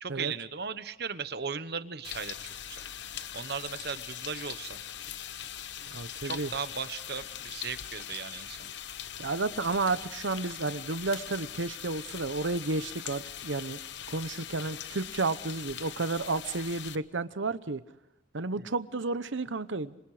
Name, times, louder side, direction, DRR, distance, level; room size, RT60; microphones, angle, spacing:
voice 1, 0.0-2.4 2.7-2.8 3.3-4.8 6.2-8.6 18.6-18.7, right 6 dB, 55° right, 12 dB, 1.1 m, -37 dB
sound 1, 2.0-17.0, left 10 dB, 65° left, 1.0 m, -41 dB
voice 2, 5.9-6.5 9.2-13.8 14.1-17.8 18.3-20.0, right 3 dB, 80° right, 13 dB, 0.9 m, -32 dB
27.0 x 25.5 x 5.0 m, 0.91 s
head